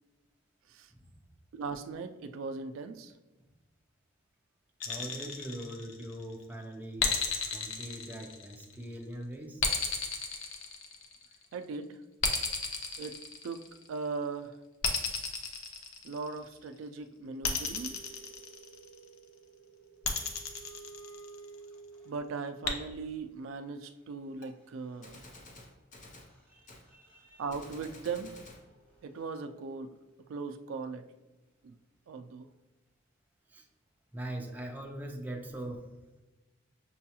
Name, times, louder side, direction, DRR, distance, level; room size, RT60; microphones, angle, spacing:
voice 1, 1.5-3.1 11.5-12.0 13.0-14.6 16.0-18.0 22.1-25.2 27.4-28.4 29.0-30.0 30.3-31.1 31.6-31.8 32.1-32.5, right 4 dB, 75° right, 8 dB, 0.3 m, -39 dB
sound 1, 4.8-6.2 7.0-8.8 9.6-11.3 12.2-13.9 14.8-16.5 17.4-19.0 20.0-21.5 22.6-22.7, left 5 dB, 85° left, 0.6 m, -33 dB
voice 2, 4.8-7.1 7.5-9.7 26.5-27.5 33.5-33.7 34.1-35.9, right 1 dB, 10° right, 1 dB, 0.5 m, -42 dB
sound 2, 17.3-22.7 24.6-24.7 24.9-30.4, right 4 dB, 5° left, 0.9 m, -55 dB
Gunshot gunfire, 24.4-24.5 25.0-26.3 26.7-26.9 27.5-28.6, left 2 dB, 40° left, 0.6 m, -51 dB
6.1 x 2.3 x 2.8 m, 1.1 s
head